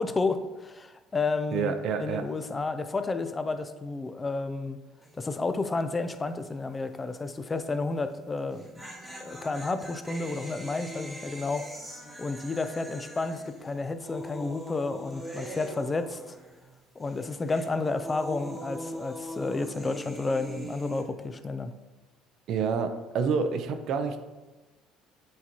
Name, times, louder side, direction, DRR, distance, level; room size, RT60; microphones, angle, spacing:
voice 1, 0.0-1.7 2.0-4.8 5.2-8.9 9.2-11.7 12.2-16.3 17.0-21.7, left 3 dB, 20° left, 10 dB, 0.4 m, -31 dB
voice 2, 1.5-2.2 22.5-24.2, right 6 dB, 60° right, 8 dB, 0.6 m, -28 dB
sound 1, 5.0-5.4 5.6-5.7 8.4-16.7 17.0-21.0, equal, 5° right, 1.3 m, -42 dB
8.5 x 4.0 x 2.9 m, 1.2 s
cardioid pair, 100°, 0 cm